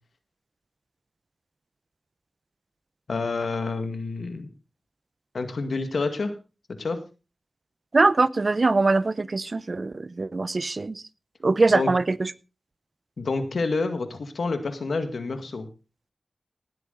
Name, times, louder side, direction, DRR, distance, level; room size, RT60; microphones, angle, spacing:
voice 1, 3.1-4.5 5.3-6.3 6.7-7.0 11.7-11.9 13.2-15.7, left 3 dB, 85° left, 8 dB, 1.8 m, -28 dB
voice 2, 7.9-11.0 11.4-12.3, right 3 dB, 55° right, 18 dB, 0.6 m, -22 dB
18.5 x 8.4 x 3.9 m, 0.31 s
wide cardioid pair, 55°, 0 cm